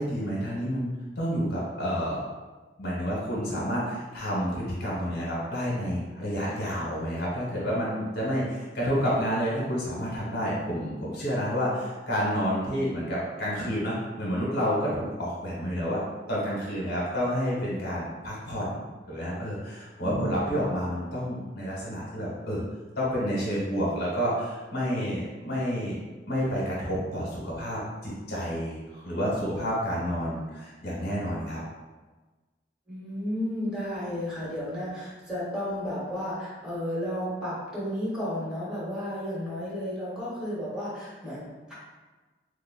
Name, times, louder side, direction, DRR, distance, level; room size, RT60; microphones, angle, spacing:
voice 1, 0.0-2.3 2.8-16.0 16.3-18.8 19.1-22.6 23.0-26.0 26.3-31.6, equal, 65° left, -5 dB, 0.9 m, -29 dB
voice 2, 20.0-20.7 32.9-41.7, equal, 5° right, -9 dB, 1.2 m, -33 dB
3.3 x 2.1 x 3.6 m, 1.3 s
head